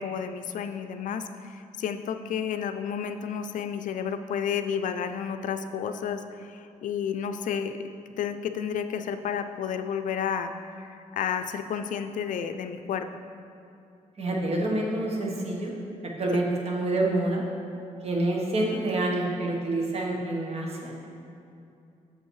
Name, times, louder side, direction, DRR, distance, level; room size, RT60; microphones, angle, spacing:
voice 1, 0.0-7.8 8.2-13.1 16.3-16.4, left 7 dB, 75° left, 9 dB, 0.4 m, -31 dB
voice 2, 14.2-15.7 16.0-17.4 18.0-21.1, right 2 dB, 50° right, -1 dB, 1.4 m, -27 dB
7.2 x 5.5 x 4.7 m, 2.6 s
cardioid pair, 90°, 13 cm